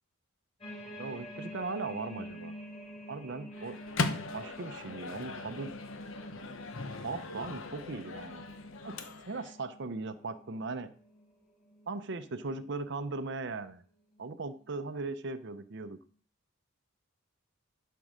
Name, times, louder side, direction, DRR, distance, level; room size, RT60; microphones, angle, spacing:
sound 1, 0.6-12.9 13.5-13.7 14.1-14.9 15.5-15.6, equal, 25° left, 4.0 m, -49 dB
voice 1, 1.0-2.5 3.1-3.8 4.3-5.7 7.0-8.4 8.8-10.9 11.9-13.8 14.2-16.0, right 3 dB, 55° right, 10 dB, 0.7 m, -38 dB
Microwave oven, 3.5-9.5, left 3 dB, 65° left, 1.0 m, -39 dB
11.0 x 4.6 x 6.4 m, 0.43 s
head